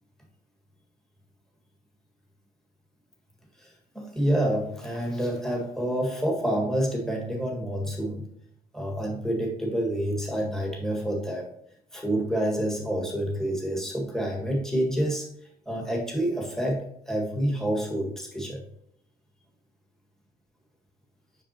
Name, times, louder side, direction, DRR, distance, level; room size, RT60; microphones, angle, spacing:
voice 1, 3.6-8.3 8.7-11.5 11.9-15.3 15.7-18.6, right 1 dB, 5° left, -1 dB, 1.7 m, -28 dB
7.3 x 6.1 x 2.9 m, 0.71 s
cardioid pair, 110°, 17 cm